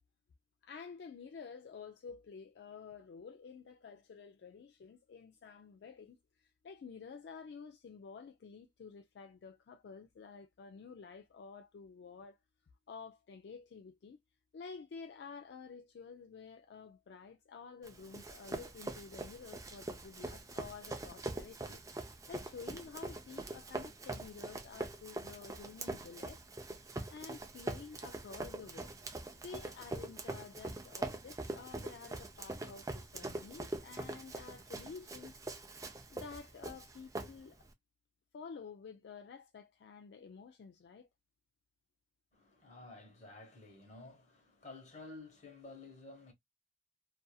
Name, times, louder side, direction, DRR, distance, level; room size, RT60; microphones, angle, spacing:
voice 1, 0.6-12.4 12.9-14.2 14.5-21.8 22.3-26.4 26.8-28.9 29.4-35.4 36.1-37.6 38.3-41.1, left 5 dB, 65° left, 0.3 m, -51 dB
Run, 17.8-37.7, right 2 dB, 20° right, 0.4 m, -43 dB
voice 2, 42.3-46.3, left 2 dB, 40° left, 1.1 m, -52 dB
2.6 x 2.5 x 2.2 m
head